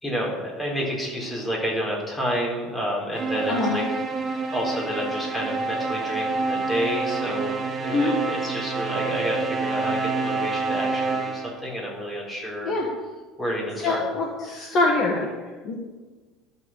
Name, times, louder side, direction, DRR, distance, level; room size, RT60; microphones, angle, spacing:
voice 1, 0.0-3.8 4.5-12.7 13.4-14.0, equal, 10° left, -3 dB, 3.9 m, -29 dB
sound 1, 3.1-11.7, right 4 dB, 35° right, 1.3 m, -28 dB
voice 2, 3.5-3.8 7.9-8.1 12.6-12.9 13.8-15.7, left 3 dB, 40° left, -1 dB, 2.0 m, -24 dB
12.0 x 6.8 x 7.4 m, 1.3 s
cardioid pair, 145°, 0 cm